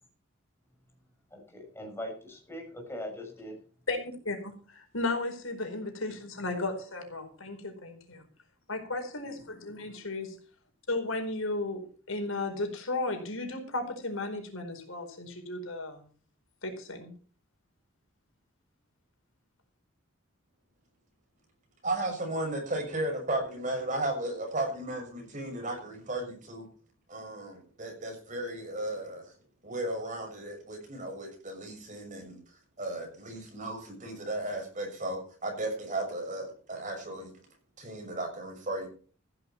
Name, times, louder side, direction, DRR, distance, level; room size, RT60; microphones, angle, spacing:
voice 1, 1.3-3.6, left 1 dB, 10° left, 1 dB, 6.5 m, -41 dB
voice 2, 4.2-8.2 8.7-10.4 10.9-11.8 12.1-16.0 16.6-17.1, left 2 dB, 80° left, 5 dB, 4.6 m, -34 dB
voice 3, 21.8-26.7 27.1-29.2 29.6-32.4 32.8-37.3 37.8-38.9, right 1 dB, 35° right, 3 dB, 6.5 m, -35 dB
15.5 x 12.0 x 4.5 m, 0.42 s
head